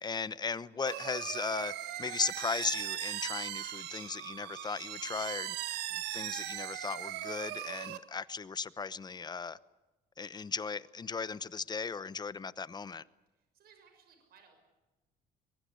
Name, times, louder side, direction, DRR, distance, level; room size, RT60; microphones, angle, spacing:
voice 1, 0.0-1.7 2.0-9.6 10.2-13.0, left 5 dB, 25° left, 0.9 m, -37 dB
sound 1, 0.9-8.0, right 13 dB, 80° right, 1.5 m, -39 dB
voice 2, 13.3-14.6, right 6 dB, 65° right, 6.5 m, -62 dB
22.5 x 22.0 x 8.4 m
cardioid pair, 110°, 17 cm